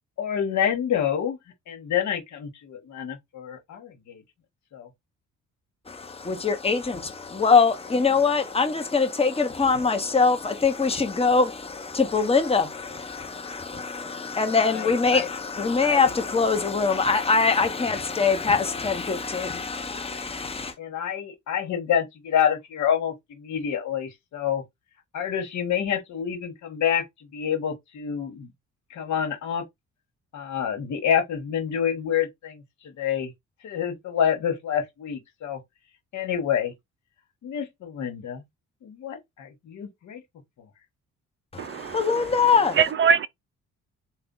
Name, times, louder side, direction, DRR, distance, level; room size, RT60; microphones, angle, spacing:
voice 1, 0.2-1.4 1.7-4.2 4.7-4.9 14.6-15.3 15.8-16.1 20.8-24.6 25.1-28.5 28.9-29.6 30.3-33.3 33.6-35.6 36.1-36.7 37.4-38.4 38.8-40.2, left 8 dB, 70° left, 1.3 m, -28 dB
voice 2, 5.9-20.7 41.5-42.8, left 4 dB, 20° left, 0.9 m, -23 dB
voice 3, 41.6-42.0 42.8-43.3, right 7 dB, 40° right, 0.4 m, -21 dB
3.3 x 2.3 x 3.9 m
cardioid pair, 90°, 30 cm